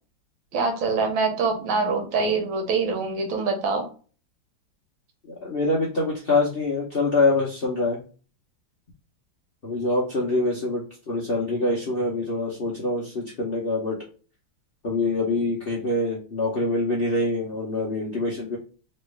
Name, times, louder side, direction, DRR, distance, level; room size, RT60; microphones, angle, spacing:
voice 1, 0.5-3.8, right 4 dB, 80° right, 4 dB, 1.7 m, -24 dB
voice 2, 5.4-8.0 9.6-14.0 14.8-18.6, left 2 dB, 55° left, -5 dB, 0.6 m, -25 dB
3.2 x 3.1 x 3.2 m, 0.38 s
omnidirectional pair, 2.1 m